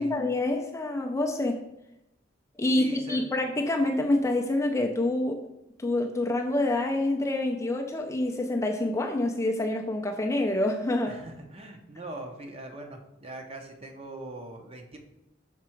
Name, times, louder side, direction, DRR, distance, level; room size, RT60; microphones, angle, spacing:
voice 1, 0.0-1.6 2.6-5.4 5.8-11.2, left 2 dB, 15° left, 2 dB, 0.4 m, -27 dB
voice 2, 2.8-3.2 11.1-15.0, right 2 dB, 30° right, 3 dB, 0.7 m, -41 dB
5.9 x 3.6 x 4.4 m, 0.87 s
head